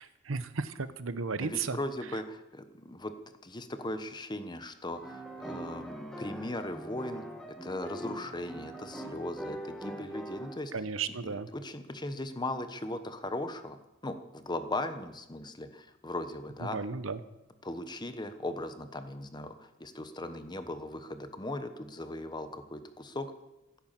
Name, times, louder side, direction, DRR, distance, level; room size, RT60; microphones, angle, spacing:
voice 1, 0.0-1.8 10.7-11.5 16.6-17.2, right 4 dB, 70° right, 13 dB, 0.9 m, -34 dB
voice 2, 1.4-3.1 3.4-7.2 7.6-10.7 11.2-16.8 17.6-23.3, left 1 dB, 20° left, 9 dB, 1.1 m, -38 dB
sound 1, 4.9-10.5, right 1 dB, 5° left, 1.5 m, -42 dB
15.0 x 10.5 x 7.5 m, 0.94 s
head